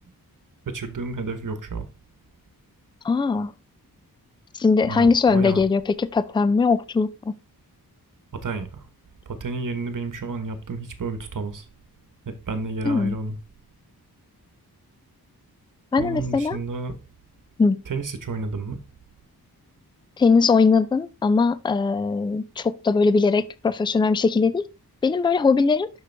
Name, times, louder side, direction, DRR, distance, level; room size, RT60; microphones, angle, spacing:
voice 1, 0.6-1.9 4.8-5.6 8.3-8.9 9.3-11.7 12.3-13.4 16.0-17.0 17.9-18.8, right 3 dB, 55° right, 1.2 m, -31 dB
voice 2, 3.0-3.5 4.5-7.4 12.9-13.2 15.9-16.6 17.6-17.8 20.2-24.6 25.0-25.9, left 4 dB, 15° left, 0.3 m, -20 dB
6.6 x 6.3 x 3.4 m
wide cardioid pair, 125°, 38 cm